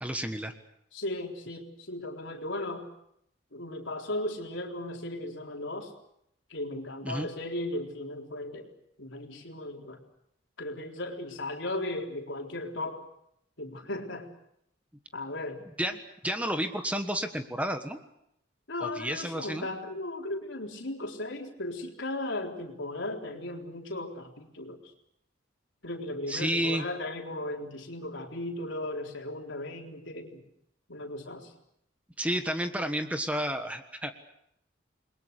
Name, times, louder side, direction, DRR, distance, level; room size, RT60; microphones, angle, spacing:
voice 1, 0.0-0.5 7.0-7.3 15.8-18.0 18.8-19.7 26.3-26.8 32.2-34.1, right 1 dB, 5° right, 7 dB, 1.4 m, -31 dB
voice 2, 0.9-2.9 3.5-5.9 6.5-8.7 9.0-10.0 10.6-13.0 13.6-14.3 15.1-15.6 18.7-24.9 25.8-30.4 30.9-31.5, left 1 dB, 75° left, 2 dB, 3.9 m, -36 dB
29.0 x 22.0 x 6.6 m, 0.75 s
head